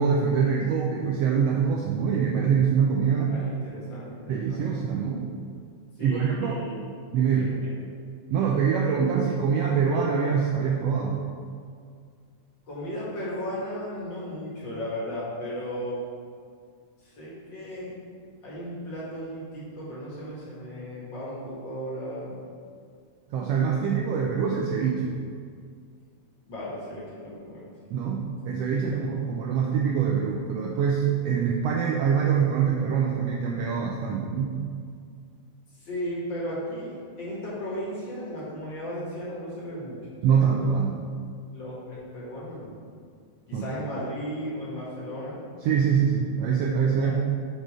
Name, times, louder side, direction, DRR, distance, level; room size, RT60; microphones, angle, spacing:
voice 1, 0.0-3.3 4.3-5.3 6.0-6.6 7.1-7.5 8.3-11.2 23.3-25.2 27.9-34.5 40.2-41.0 43.5-43.6 45.6-47.1, right 6 dB, 80° right, -1 dB, 1.4 m, -24 dB
voice 2, 3.3-4.7 6.0-6.9 7.4-7.9 12.7-16.0 17.0-17.9 18.4-22.5 26.5-27.7 28.9-29.2 35.7-40.5 41.5-42.8 43.5-45.4 47.0-47.1, equal, 45° left, -7 dB, 2.1 m, -35 dB
7.7 x 4.7 x 4.8 m, 2.2 s
omnidirectional pair, 3.4 m